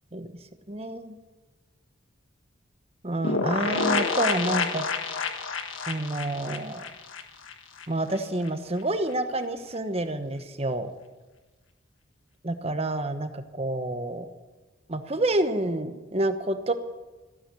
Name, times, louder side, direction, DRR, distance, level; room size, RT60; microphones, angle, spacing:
voice 1, 0.7-1.2 3.0-4.9 5.8-6.8 7.9-10.9 12.4-14.3 14.9-16.7, right 1 dB, 30° right, 8 dB, 1.0 m, -28 dB
sound 1, 3.2-7.9 8.1-8.2 8.5-8.6, left 4 dB, 75° left, 1.5 m, -28 dB
14.5 x 11.0 x 8.4 m, 1.2 s
head